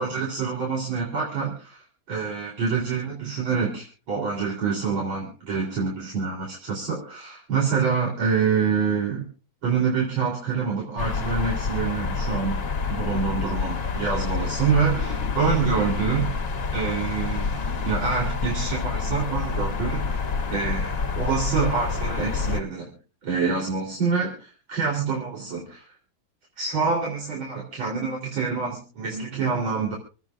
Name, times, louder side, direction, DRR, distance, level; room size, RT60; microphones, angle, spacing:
voice 1, 0.0-9.3 9.6-12.6 12.9-16.3 16.7-20.2 20.5-22.9 23.2-25.9 26.6-30.0, right 5 dB, 75° right, -3 dB, 4.2 m, -26 dB
sound 1, 11.0-22.6, left 5 dB, 40° left, 0.9 m, -28 dB
28.0 x 9.3 x 2.4 m, 0.37 s
omnidirectional pair, 2.2 m